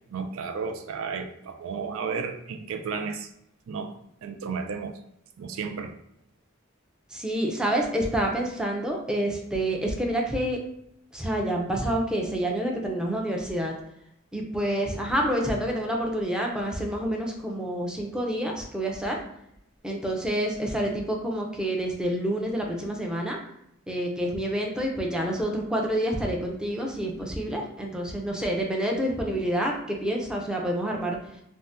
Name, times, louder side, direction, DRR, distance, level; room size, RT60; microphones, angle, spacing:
voice 1, 0.1-3.3 3.7-4.0 4.2-5.0 5.4-5.9, right 5 dB, 90° right, 7 dB, 0.4 m, -33 dB
voice 2, 7.1-10.6 11.1-13.7 14.3-19.2 19.8-23.4 23.9-31.2, right 1 dB, 5° right, 0 dB, 0.4 m, -28 dB
2.6 x 2.1 x 3.4 m, 0.78 s
head